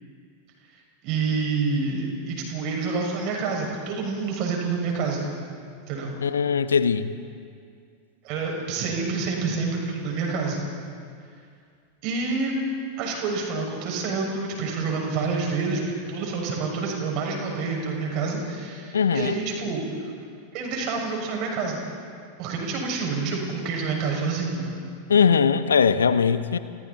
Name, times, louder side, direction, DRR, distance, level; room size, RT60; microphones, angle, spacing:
voice 1, 1.0-5.3 5.9-6.1 8.2-10.6 12.0-12.5 13.0-20.1 20.5-21.8 22.4-24.8, right 4 dB, 40° right, 0 dB, 6.8 m, -28 dB
voice 2, 6.2-7.1 18.9-19.4 25.1-26.6, left 6 dB, 70° left, 12 dB, 1.1 m, -20 dB
28.5 x 28.0 x 4.4 m, 2.3 s
figure-of-eight pair, 90°, 0 cm